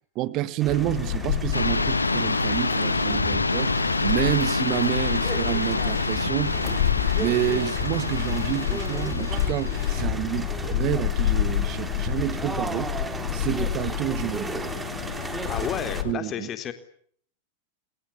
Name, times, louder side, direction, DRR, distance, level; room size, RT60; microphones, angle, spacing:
voice 1, 0.1-6.9 7.2-12.9 13.3-14.5 16.0-16.5, right 15 dB, 40° right, 1.7 m, -29 dB
sound 1, 0.6-16.0, right 3 dB, 10° right, 3.4 m, -36 dB
sound 2, 0.7-16.1, left 13 dB, 55° left, 1.3 m, -29 dB
sound 3, 1.5-10.0, left 3 dB, 80° left, 1.8 m, -27 dB
voice 2, 15.5-16.7, left 9 dB, 30° left, 3.9 m, -31 dB
28.5 x 27.5 x 7.2 m
figure-of-eight pair, 90°, 0 cm